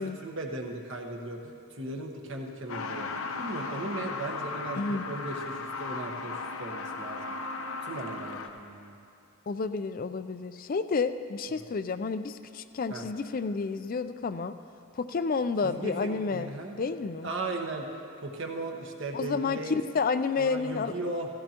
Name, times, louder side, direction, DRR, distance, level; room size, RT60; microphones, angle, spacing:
voice 1, 0.0-3.1 3.4-7.3 7.8-9.0 12.9-13.0 15.6-16.8 17.2-17.9 18.2-19.8 20.4-21.3, right 2 dB, 55° right, 1 dB, 1.3 m, -37 dB
Truck, 2.7-8.5, left 3 dB, 70° left, 0.8 m, -36 dB
voice 2, 4.7-5.1 9.5-14.5 15.0-16.5 16.8-17.3 19.1-20.9, left 4 dB, 40° left, 11 dB, 0.4 m, -30 dB
16.5 x 15.5 x 3.0 m, 2.5 s
head